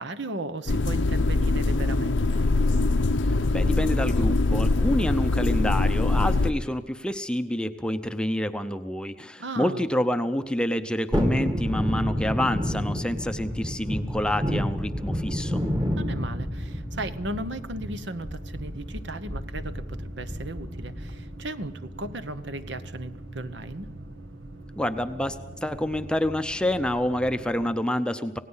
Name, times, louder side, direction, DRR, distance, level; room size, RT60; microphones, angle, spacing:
voice 1, 0.0-2.4 9.4-9.8 16.0-23.9, right 2 dB, 65° right, 11 dB, 1.1 m, -36 dB
sound 1, 0.7-6.5, left 2 dB, 70° left, 0.8 m, -23 dB
voice 2, 3.2-15.6 24.8-28.4, left 1 dB, 5° left, 8 dB, 0.7 m, -28 dB
Thunderstorm, 11.1-21.3 21.7-21.8, equal, 20° right, 1.6 m, -30 dB
sound 2, 13.3-27.8, right 1 dB, 85° right, 1.6 m, -43 dB
27.0 x 17.5 x 5.7 m, 1.0 s
head